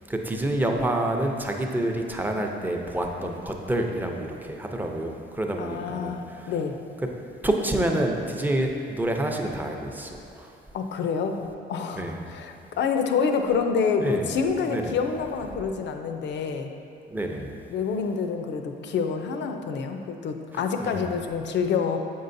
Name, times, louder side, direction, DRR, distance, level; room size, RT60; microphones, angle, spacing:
voice 1, 0.1-6.5 7.4-10.5 11.9-12.3 14.0-14.3 14.7-15.0 17.1-17.5 20.8-21.1, right 1 dB, 10° right, 2 dB, 0.6 m, -28 dB
voice 2, 5.6-6.8 10.7-16.7 17.7-22.0, left 5 dB, 65° left, 6 dB, 0.5 m, -27 dB
7.5 x 5.4 x 2.6 m, 2.7 s
cardioid pair, 90°, 20 cm